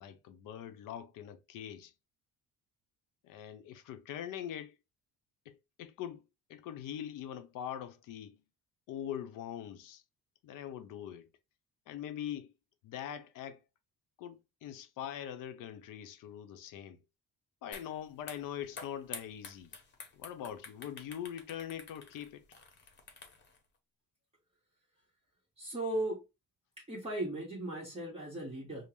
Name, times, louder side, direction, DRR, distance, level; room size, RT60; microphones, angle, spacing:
voice 1, 0.0-1.9 3.2-4.8 5.5-6.2 6.5-8.4 8.9-10.0 10.4-11.3 11.9-12.5 12.8-13.6 14.2-17.0 17.6-19.7 20.1-22.4, left 10 dB, 70° left, 0.7 m, -42 dB
sound 1, 17.7-17.9 18.2-23.6, left 4 dB, 35° left, 0.9 m, -49 dB
voice 2, 25.6-26.2 26.8-28.9, right 1 dB, 15° right, 1.1 m, -37 dB
5.3 x 2.0 x 3.0 m
cardioid pair, 135°, 33 cm